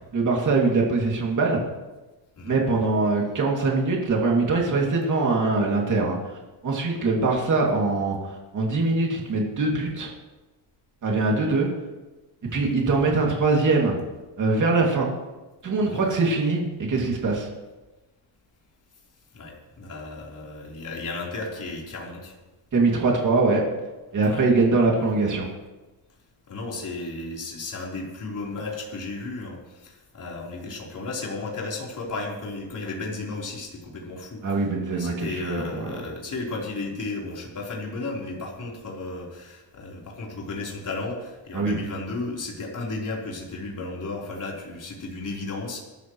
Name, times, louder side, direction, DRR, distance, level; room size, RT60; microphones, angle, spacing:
voice 1, 0.1-1.6 2.5-6.3 6.6-10.1 11.0-11.7 12.5-14.0 14.4-15.1 15.6-17.5 22.7-23.6 24.1-25.5 34.4-35.9 41.5-41.8, right 3 dB, 40° right, -1 dB, 2.6 m, -22 dB
voice 2, 19.3-22.4 24.2-24.4 26.5-34.6 34.9-45.8, left 3 dB, 45° left, -3 dB, 4.1 m, -34 dB
23.0 x 12.5 x 3.2 m, 1.1 s
cardioid pair, 145°, 45 cm